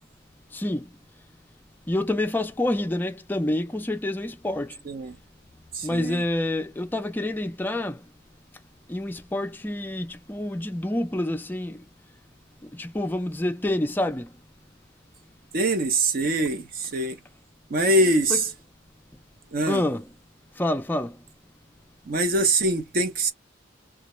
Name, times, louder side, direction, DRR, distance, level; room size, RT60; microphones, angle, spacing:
voice 1, 0.5-0.8 1.9-4.7 5.8-8.0 8.9-11.8 12.7-14.3 18.3-18.4 19.7-20.0 20.6-21.2, left 1 dB, 10° left, 0.3 m, -27 dB
voice 2, 4.8-5.2 5.7-6.2 15.5-17.2 17.7-18.5 19.5-19.8 22.1-23.3, right 2 dB, 50° right, 0.5 m, -23 dB
2.3 x 2.0 x 3.0 m
head